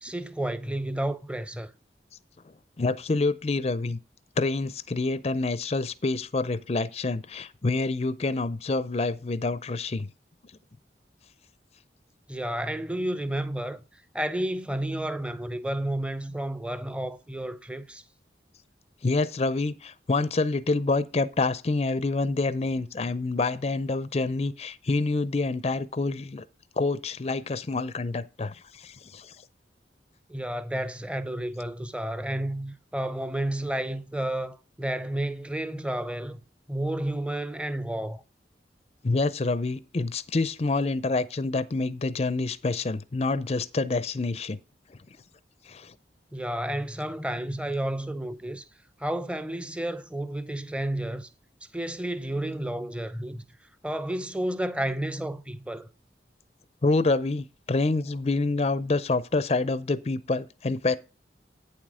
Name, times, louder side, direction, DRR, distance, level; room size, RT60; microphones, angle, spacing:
voice 1, 0.0-1.7 12.3-18.0 30.3-36.4 36.7-38.2 46.3-48.7 49.0-51.3 51.7-53.4 53.8-55.9, right 1 dB, 5° right, 0.7 m, -31 dB
voice 2, 2.8-4.0 4.4-10.1 19.0-26.4 26.8-29.3 39.0-44.6 45.7-45.9 56.8-61.0, left 3 dB, 35° left, 0.5 m, -27 dB
9.1 x 7.5 x 4.9 m
head